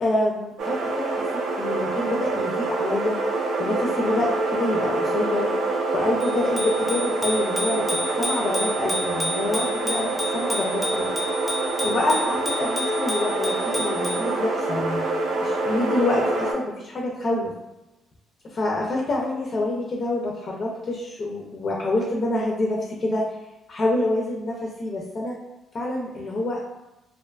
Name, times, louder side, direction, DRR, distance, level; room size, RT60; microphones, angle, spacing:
voice 1, 0.0-3.2 3.6-5.5 5.9-11.1 11.8-15.0 15.4-17.5 18.4-23.3 23.7-25.4 25.7-26.6, left 2 dB, 50° left, -2 dB, 0.4 m, -27 dB
sound 1, 0.6-16.5, right 2 dB, 75° right, 0.4 m, -26 dB
Bicycle bell, 6.2-14.3, left 1 dB, 5° right, 0.6 m, -31 dB
2.4 x 2.2 x 2.4 m, 0.97 s
cardioid pair, 90°, 0 cm